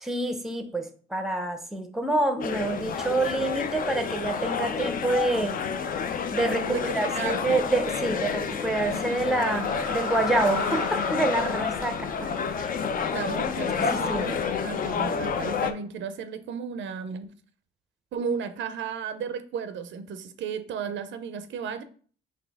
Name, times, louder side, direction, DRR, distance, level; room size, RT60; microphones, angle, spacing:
voice 1, 0.0-5.6 6.3-12.3 13.8-14.3, right 2 dB, ahead, 7 dB, 0.6 m, -27 dB
sound 1, 2.4-15.7, left 6 dB, 45° left, 0.4 m, -29 dB
voice 2, 6.6-7.6 13.1-17.3 18.1-21.8, right 6 dB, 70° right, 11 dB, 0.5 m, -34 dB
sound 2, 8.5-14.6, left 3 dB, 85° left, 1.3 m, -36 dB
4.2 x 2.7 x 3.4 m, 0.43 s
cardioid pair, 90°, 20 cm